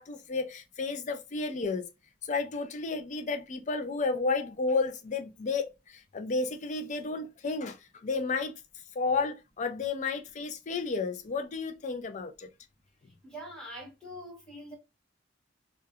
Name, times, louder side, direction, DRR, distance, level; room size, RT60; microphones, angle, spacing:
voice 1, 0.0-1.9 2.2-8.6 9.0-12.5, left 4 dB, 40° left, 0.4 m, -32 dB
voice 2, 13.2-14.8, equal, 5° left, 1.0 m, -43 dB
2.3 x 2.2 x 2.7 m
head